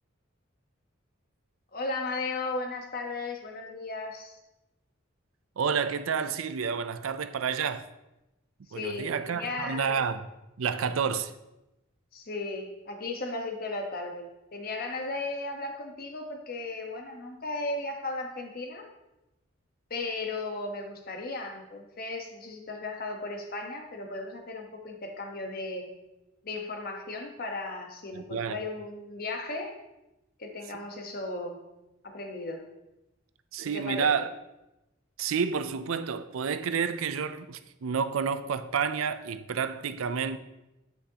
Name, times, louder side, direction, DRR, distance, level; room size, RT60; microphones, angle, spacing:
voice 1, 1.7-4.4 8.7-10.0 12.1-18.8 19.9-25.9 26.4-29.7 30.4-31.6 32.0-32.6 33.6-34.3, left 2 dB, 45° left, 1.1 m, -36 dB
voice 2, 5.6-7.8 8.7-10.3 10.6-11.3 28.1-28.6 33.5-34.3 35.2-40.4, right 6 dB, 90° right, 0.5 m, -29 dB
8.2 x 8.1 x 2.9 m
head